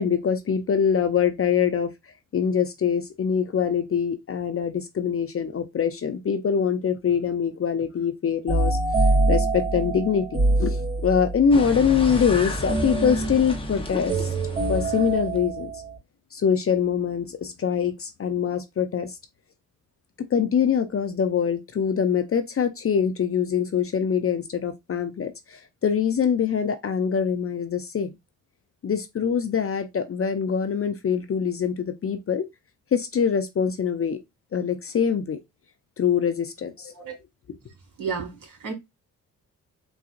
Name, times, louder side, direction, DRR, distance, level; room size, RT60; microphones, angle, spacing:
voice 1, 0.0-1.9 2.3-8.8 9.3-10.3 10.6-14.3 14.7-15.7 16.3-19.2 20.2-28.2 28.8-32.4 32.9-34.2 34.5-35.4 36.0-36.9, left 7 dB, 35° left, 0.5 m, -24 dB
sound 1, 8.5-11.5 12.7-16.0, right 2 dB, 35° right, 2.0 m, -24 dB
sound 2, 11.5-15.4, equal, 15° left, 0.9 m, -32 dB
voice 2, 38.0-38.7, right 5 dB, 55° right, 1.9 m, -32 dB
3.9 x 2.4 x 2.5 m
supercardioid pair, 50°, 39 cm